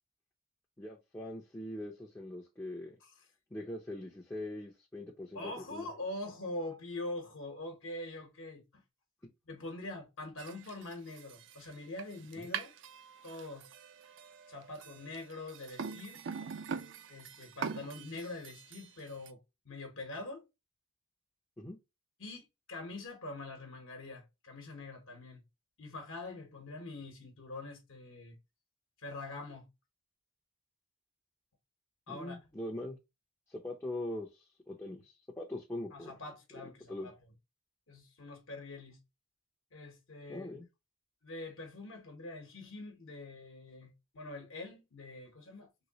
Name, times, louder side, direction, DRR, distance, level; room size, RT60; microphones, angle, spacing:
voice 1, 0.8-3.0 3.5-5.4 5.7-5.9 12.4-12.5 21.6-21.8 32.1-33.0 33.5-36.1 36.6-37.1 40.3-40.7, left 1 dB, 10° left, 0.4 m, -42 dB
voice 2, 5.3-8.8 9.5-12.7 13.2-13.7 14.5-16.5 17.1-20.5 22.2-25.4 25.8-28.4 29.0-29.7 32.1-32.4 35.9-37.2 37.9-39.0 39.7-40.5 41.2-45.7, left 2 dB, 65° left, 0.9 m, -44 dB
sound 1, 10.4-19.3, right 6 dB, 55° right, 0.4 m, -44 dB
3.0 x 3.0 x 2.7 m
head